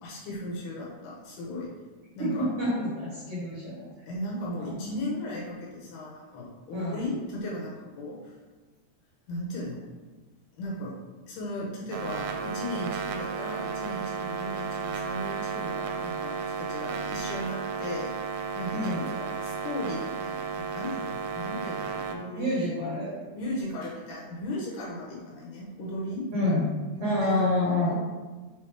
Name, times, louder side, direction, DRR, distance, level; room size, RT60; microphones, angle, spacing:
voice 1, 0.0-1.7 2.1-2.5 4.1-8.4 9.3-9.8 10.5-10.9 11.3-18.1 18.5-22.7 23.3-26.3 27.0-27.5 27.9-28.0, left 1 dB, 70° left, -4 dB, 2.8 m, -36 dB
voice 2, 2.2-3.9 4.5-4.7 6.7-7.0 18.7-19.0 22.4-23.1 26.3-26.7 27.0-27.9, left 1 dB, 60° right, -8 dB, 2.0 m, -28 dB
sound 1, 11.9-22.2, right 5 dB, 85° right, 2.7 m, -33 dB
6.9 x 3.9 x 3.4 m, 1.3 s
omnidirectional pair, 4.9 m